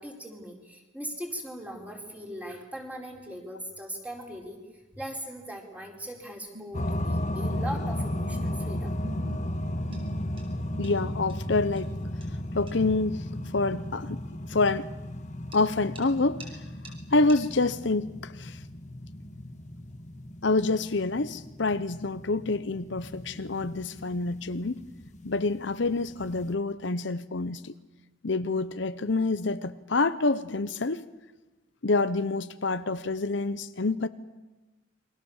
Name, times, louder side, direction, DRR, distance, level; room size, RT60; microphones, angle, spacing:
voice 1, 0.0-8.9, equal, 5° right, 4.6 m, -39 dB
sound 1, 3.7-22.0, right 2 dB, 30° right, 6.0 m, -58 dB
sound 2, 6.5-11.3, left 1 dB, 60° right, 1.6 m, -47 dB
sound 3, 6.7-26.5, left 1 dB, 35° left, 1.5 m, -35 dB
voice 2, 10.8-12.0 12.5-14.2 14.5-14.9 15.5-16.5 17.1-18.6 20.4-24.8 25.2-27.7 28.2-31.0 31.8-34.1, left 3 dB, 65° left, 0.9 m, -27 dB
29.0 x 24.0 x 7.3 m
head